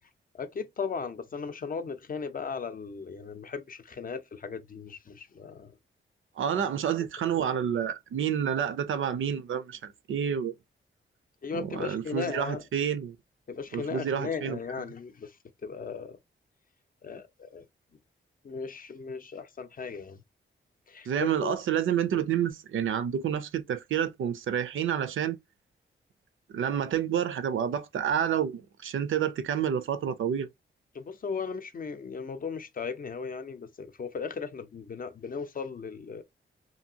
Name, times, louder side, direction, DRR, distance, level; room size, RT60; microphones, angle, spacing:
voice 1, 0.3-5.7 11.4-12.6 13.5-15.4 15.6-16.2 17.0-17.6 18.4-20.2 20.9-21.6 30.9-36.2, left 5 dB, 45° left, 0.5 m, -37 dB
voice 2, 6.4-10.5 11.5-13.2 13.7-14.6 21.1-25.4 26.5-30.5, right 8 dB, 75° right, 0.5 m, -29 dB
2.7 x 2.6 x 2.7 m
wide cardioid pair, 135°, 20 cm